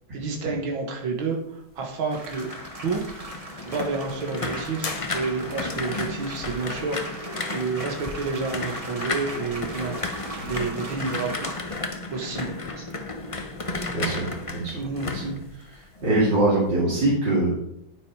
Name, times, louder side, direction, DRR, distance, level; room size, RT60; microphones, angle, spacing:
voice 1, 0.1-2.5 2.8-3.0 3.7-12.5 14.7-15.1, right 4 dB, 85° right, 0 dB, 2.3 m, -30 dB
sound 1, 2.1-16.1 16.5-16.8, left 3 dB, 30° left, 0.6 m, -34 dB
sound 2, 2.1-11.5, right 1 dB, 20° right, 1.5 m, -39 dB
sound 3, 4.8-5.8, left 4 dB, 65° left, 0.3 m, -36 dB
voice 2, 13.9-14.3 14.5-14.7 15.1-15.3 15.6-17.5, right 2 dB, 65° right, -7 dB, 3.3 m, -23 dB
9.9 x 9.8 x 4.8 m, 0.74 s
omnidirectional pair, 2.1 m